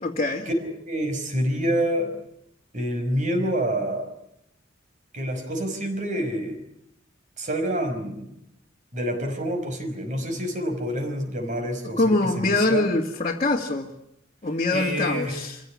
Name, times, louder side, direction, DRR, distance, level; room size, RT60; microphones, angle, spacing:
voice 1, 0.0-0.5 11.8-13.9 14.4-15.6, left 2 dB, 35° left, -2 dB, 2.2 m, -24 dB
voice 2, 0.6-2.1 2.7-4.1 5.1-6.6 7.4-8.3 8.9-12.8 14.7-15.4, equal, 40° right, 6 dB, 5.3 m, -27 dB
27.0 x 16.0 x 9.8 m, 0.79 s
head